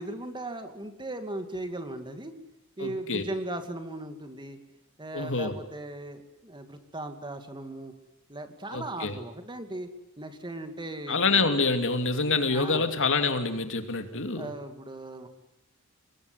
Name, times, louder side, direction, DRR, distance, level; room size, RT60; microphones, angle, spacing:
voice 1, 0.0-2.3 2.8-4.6 5.0-7.9 8.3-9.9 10.2-11.5 12.5-12.8 14.4-15.3, right 1 dB, 20° right, 7 dB, 2.6 m, -37 dB
voice 2, 2.8-3.2 5.1-5.5 8.7-9.2 11.1-14.5, left 4 dB, 60° left, 7 dB, 2.7 m, -26 dB
26.0 x 21.5 x 9.9 m, 0.81 s
head